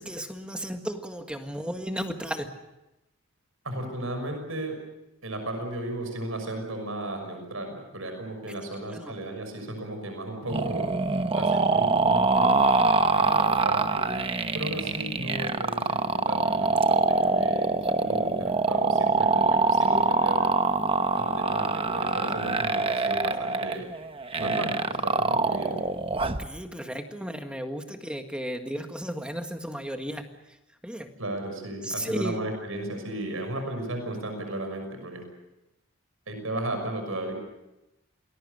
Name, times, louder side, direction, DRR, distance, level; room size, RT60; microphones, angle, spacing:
voice 1, 0.0-2.5 8.9-9.2 26.2-30.3 30.8-31.1 31.8-32.4, equal, 5° right, 5 dB, 1.7 m, -34 dB
voice 2, 3.6-4.7 5.2-10.9 11.3-14.1 14.5-20.4 21.2-23.9 24.4-25.8 31.2-35.2 36.3-37.3, right 1 dB, 75° right, 5 dB, 6.2 m, -35 dB
sound 1, 10.5-26.5, right 3 dB, 25° right, 0.9 m, -24 dB
28.0 x 20.5 x 6.7 m, 0.95 s
head